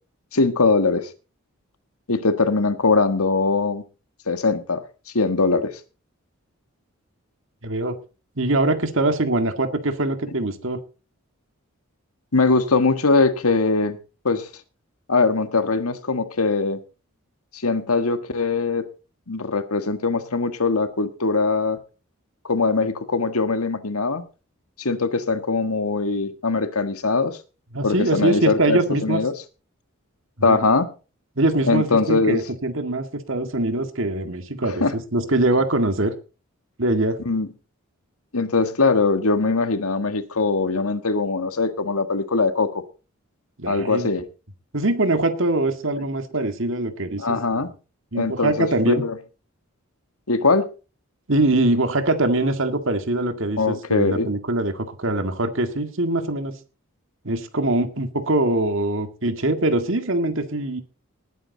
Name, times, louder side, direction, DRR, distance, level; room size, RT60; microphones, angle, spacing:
voice 1, 0.3-1.1 2.1-3.8 4.3-4.8 5.1-5.7 12.3-14.0 14.2-14.5 15.1-16.8 17.5-18.9 19.3-21.8 22.4-24.2 24.8-27.4 27.8-29.3 30.4-30.9 31.6-32.4 34.6-34.9 37.2-37.5 38.3-42.8 43.7-44.3 47.2-47.7 48.1-49.2 50.3-50.7 53.6-54.3, left 3 dB, 85° left, 1.6 m, -21 dB
voice 2, 7.6-8.0 8.4-10.8 27.7-29.2 30.5-30.6 31.4-36.2 36.8-37.2 43.6-44.1 44.7-47.7 48.1-49.0 51.3-56.5 57.2-60.8, right 2 dB, 60° right, 1.9 m, -23 dB
19.5 x 9.1 x 4.0 m
head